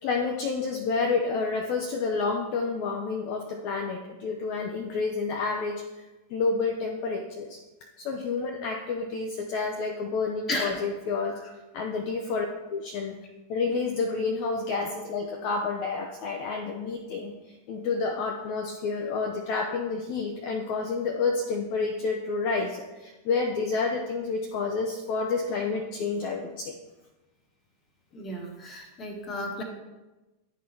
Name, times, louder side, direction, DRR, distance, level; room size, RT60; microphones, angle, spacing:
voice 1, 0.0-5.8 6.3-7.6 8.0-11.4 11.7-13.2 13.5-17.3 17.7-26.8, left 4 dB, 45° left, 2 dB, 0.5 m, -29 dB
voice 2, 28.1-29.6, left 1 dB, 30° left, 3 dB, 1.2 m, -33 dB
10.0 x 3.9 x 2.9 m, 1.1 s
figure-of-eight pair, 90°, 0 cm